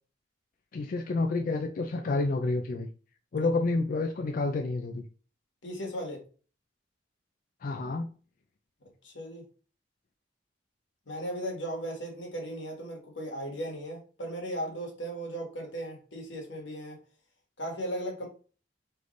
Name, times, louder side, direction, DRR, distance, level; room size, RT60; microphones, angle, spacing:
voice 1, 0.7-2.9 3.3-5.1 7.6-8.1, left 3 dB, 50° left, 4 dB, 0.4 m, -29 dB
voice 2, 5.6-6.2 9.0-9.4 11.1-17.0 17.6-18.3, right 1 dB, 90° left, 1 dB, 1.5 m, -36 dB
3.9 x 3.3 x 3.2 m, 0.38 s
head